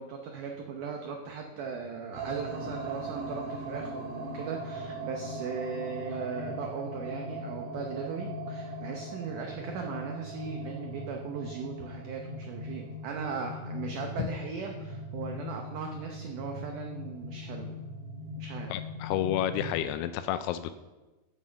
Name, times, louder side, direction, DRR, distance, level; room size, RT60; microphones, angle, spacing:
voice 1, 0.0-17.8 18.4-18.7, right 5 dB, 85° right, 2 dB, 1.8 m, -38 dB
sound 1, 2.2-19.8, equal, 55° right, 2.4 m, -39 dB
voice 2, 18.7-20.8, left 11 dB, 85° left, 11 dB, 2.4 m, -30 dB
8.2 x 7.4 x 6.7 m, 1.1 s
omnidirectional pair, 4.9 m